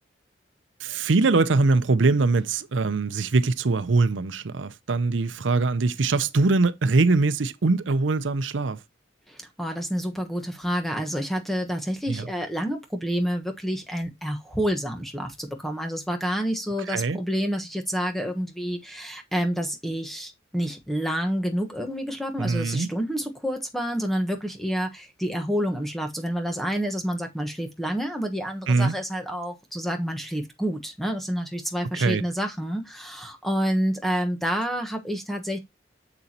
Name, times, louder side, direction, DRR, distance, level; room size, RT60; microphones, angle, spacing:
voice 1, 0.8-8.8 12.1-12.2 16.9-17.2 22.4-22.9 28.7-28.9 31.9-32.2, right 3 dB, 85° right, 0.6 m, -22 dB
voice 2, 9.3-35.6, equal, ahead, 1.2 m, -28 dB
7.0 x 6.8 x 2.8 m
head